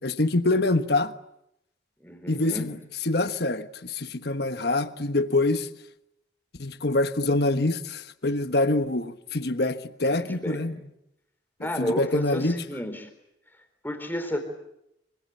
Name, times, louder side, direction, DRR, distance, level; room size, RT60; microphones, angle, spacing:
voice 1, 0.0-1.1 2.3-2.7 3.0-5.7 6.6-10.8 11.6-12.6, left 2 dB, 55° left, 1.3 m, -25 dB
voice 2, 2.0-2.7 10.2-10.6 11.6-13.1 13.8-14.4, equal, 10° left, 4.1 m, -32 dB
26.5 x 25.5 x 8.4 m
head